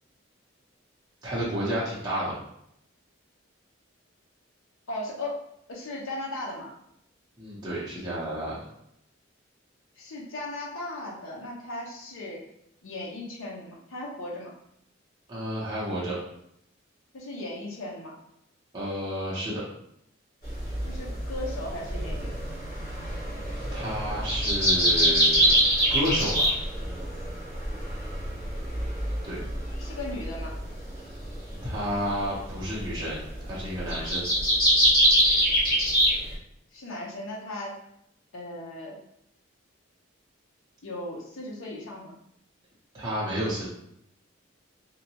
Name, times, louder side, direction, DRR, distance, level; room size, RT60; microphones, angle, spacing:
voice 1, 1.2-2.4 7.4-8.6 15.3-16.2 18.7-19.6 23.7-26.5 29.2-29.4 31.6-34.3 42.9-43.6, equal, 20° right, -8 dB, 0.7 m, -31 dB
voice 2, 4.9-5.4 5.7-6.7 10.0-12.4 12.8-14.5 17.1-18.1 20.8-22.4 29.8-30.5 36.7-37.7 38.3-39.0 40.8-42.2, left 1 dB, 75° left, -2 dB, 0.6 m, -37 dB
sound 1, 20.4-36.3, equal, 45° left, 1.1 m, -25 dB
2.7 x 2.2 x 2.7 m, 0.75 s
head